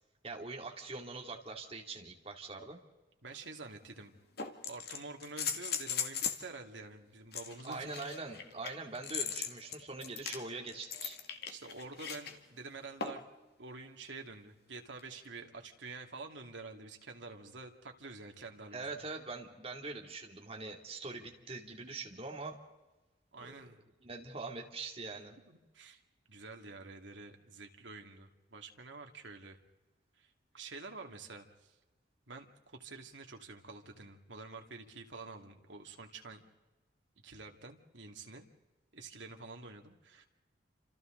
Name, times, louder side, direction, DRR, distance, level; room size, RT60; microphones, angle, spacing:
voice 1, 0.2-2.8 7.6-11.2 18.7-22.6 23.4-23.5 24.0-25.4, right 3 dB, 30° right, 1 dB, 2.7 m, -43 dB
voice 2, 3.2-4.2 4.6-8.0 11.5-13.2 13.6-19.0 23.3-23.8 25.5-26.0 26.3-29.6 30.2-31.8 32.3-36.5 37.2-38.5 38.9-40.3, right 3 dB, 85° right, 3 dB, 2.4 m, -48 dB
sound 1, 3.3-3.4 4.4-6.5 7.3-12.3 13.0-13.3 15.0-15.1, left 7 dB, 60° left, 2.0 m, -39 dB
29.5 x 27.0 x 3.9 m, 1.1 s
head